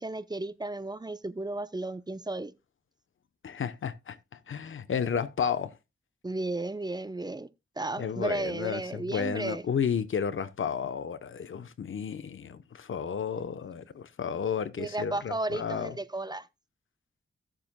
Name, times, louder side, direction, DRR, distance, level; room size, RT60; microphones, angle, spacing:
voice 1, 0.0-2.5 6.2-7.5 7.8-9.6 14.8-16.5, right 2 dB, 20° right, 0.7 m, -34 dB
voice 2, 3.4-4.2 4.5-5.7 8.0-16.0, left 7 dB, 70° left, 0.9 m, -32 dB
16.0 x 7.4 x 2.2 m
cardioid pair, 55°, 21 cm